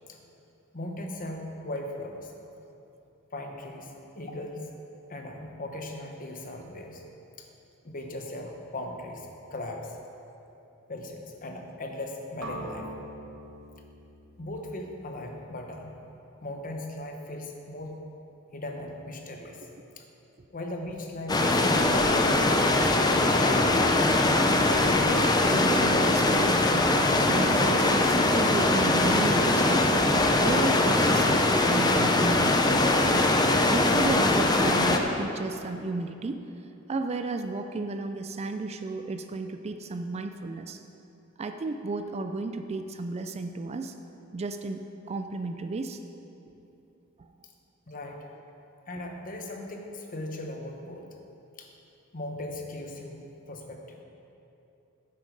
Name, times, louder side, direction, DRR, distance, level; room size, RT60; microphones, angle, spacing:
voice 1, 0.7-2.3 3.3-4.7 5.1-7.0 7.4-7.5 7.8-10.0 10.9-12.9 14.4-16.0 16.4-18.0 18.5-19.7 20.0-20.1 20.5-23.1 26.0-26.1 47.9-48.3 48.9-51.1 51.6-51.7 52.1-53.2 53.5-54.0, left 1 dB, 40° left, 3 dB, 1.0 m, -38 dB
sound 1, 12.4-16.4, right 1 dB, 65° right, 1.4 m, -44 dB
sound 2, 21.3-35.0, left 2 dB, 20° left, 0.6 m, -22 dB
voice 2, 25.5-29.9 30.4-32.8 33.6-36.4 36.9-40.8 41.4-43.9 44.3-44.8 45.1-46.0 47.2-47.3, right 3 dB, 30° right, 7 dB, 0.4 m, -33 dB
9.7 x 7.7 x 5.2 m, 2.9 s
head